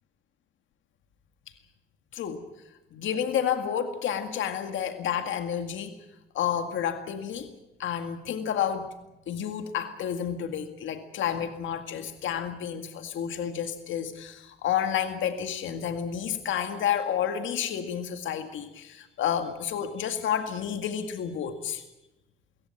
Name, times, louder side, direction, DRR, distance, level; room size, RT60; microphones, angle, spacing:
voice 1, 2.1-2.5 2.9-6.0 6.3-7.5 7.8-8.9 9.3-21.8, left 9 dB, 75° left, 7 dB, 2.0 m, -30 dB
23.0 x 17.0 x 8.8 m, 0.96 s
cardioid pair, 90°, 20 cm